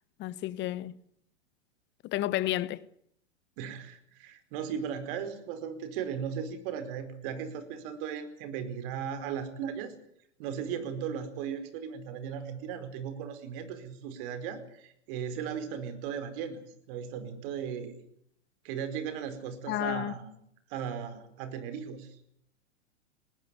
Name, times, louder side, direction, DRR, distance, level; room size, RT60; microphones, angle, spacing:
voice 1, 0.2-0.9 2.0-2.8 19.7-20.1, left 15 dB, 30° left, 1.2 m, -31 dB
voice 2, 3.6-9.9 10.4-16.6 16.9-18.0 18.6-20.3 20.7-22.1, right 7 dB, 50° right, 4.8 m, -37 dB
19.5 x 19.5 x 9.8 m
hypercardioid pair, 105°, 35 cm